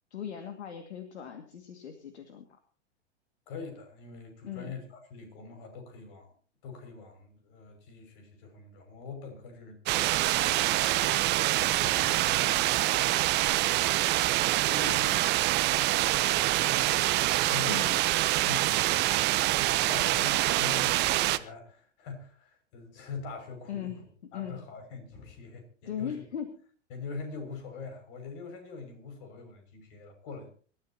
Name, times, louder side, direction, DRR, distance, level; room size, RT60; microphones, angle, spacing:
voice 1, 0.1-2.4 4.4-4.7 14.6-15.2 17.7-18.0 23.7-24.6 25.9-26.6, left 8 dB, 65° left, 7 dB, 2.4 m, -39 dB
voice 2, 3.5-6.3 6.6-11.0 11.6-13.0 14.8-15.0 16.3-17.1 17.5-17.9 18.4-24.0 24.3-26.2 26.9-30.5, left 4 dB, 50° left, 6 dB, 6.5 m, -44 dB
sound 1, 9.9-21.4, right 16 dB, 30° right, 0.9 m, -25 dB
26.0 x 13.5 x 2.9 m, 0.41 s
figure-of-eight pair, 100°, 36 cm